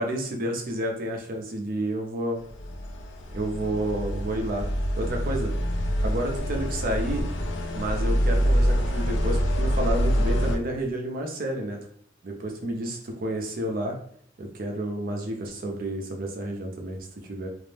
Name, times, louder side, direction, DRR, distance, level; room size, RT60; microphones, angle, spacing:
voice 1, 0.0-2.4 3.3-4.7 5.0-5.5 6.0-7.2 7.7-11.8 12.2-14.0 14.4-17.5, right 1 dB, 50° right, 2 dB, 0.5 m, -30 dB
sound 1, 2.5-10.6, equal, 65° left, 0.4 m, -25 dB
2.5 x 2.0 x 3.2 m, 0.63 s
head